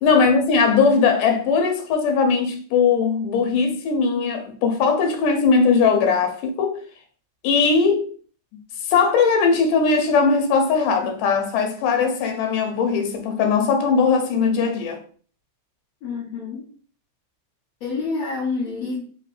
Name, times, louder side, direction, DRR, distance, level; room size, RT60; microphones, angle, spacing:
voice 1, 0.0-6.8 7.4-8.1 8.9-15.0, left 5 dB, 90° left, 2.3 m, -19 dB
voice 2, 16.0-16.7 17.8-19.0, left 4 dB, 65° left, 1.9 m, -28 dB
5.0 x 2.8 x 3.2 m
omnidirectional pair, 3.7 m